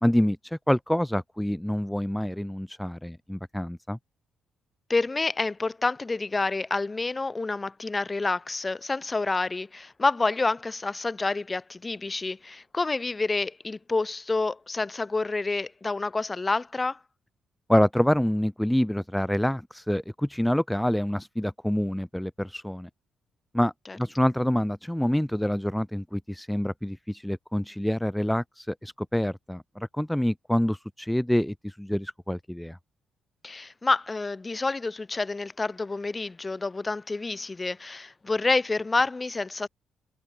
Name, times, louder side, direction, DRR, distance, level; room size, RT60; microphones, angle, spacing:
voice 1, 0.0-4.0 17.7-22.9 23.5-32.8, equal, 5° left, 0.5 m, -27 dB
voice 2, 4.9-17.0 23.9-24.0 33.4-39.7, left 3 dB, 25° left, 1.6 m, -28 dB
cardioid pair, 90°, 0 cm